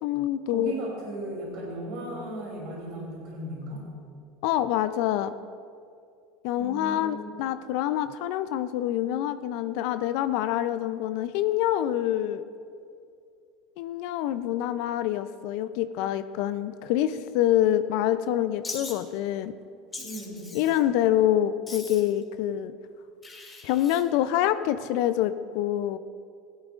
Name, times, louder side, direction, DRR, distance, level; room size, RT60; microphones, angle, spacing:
voice 1, 0.0-0.7 4.4-5.3 6.4-12.4 13.8-19.5 20.5-22.7 23.6-26.0, left 12 dB, 70° left, 12 dB, 0.4 m, -26 dB
voice 2, 0.5-3.8 6.6-7.3 20.0-20.5, right 1 dB, 65° right, -3 dB, 3.0 m, -36 dB
Wild animals, 18.6-18.9 19.9-20.8 21.7-22.2 23.2-24.0, left 3 dB, 20° left, 2.0 m, -40 dB
16.0 x 11.5 x 2.4 m, 2.4 s
hypercardioid pair, 90°, 0 cm